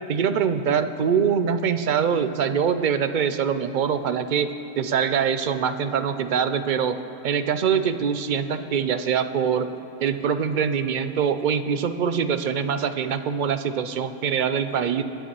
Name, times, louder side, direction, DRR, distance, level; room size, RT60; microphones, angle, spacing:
voice 1, 0.1-7.0 7.2-9.7 10.0-15.0, right 7 dB, 55° right, 10 dB, 0.7 m, -24 dB
22.5 x 11.5 x 3.0 m, 2.9 s
omnidirectional pair, 1.1 m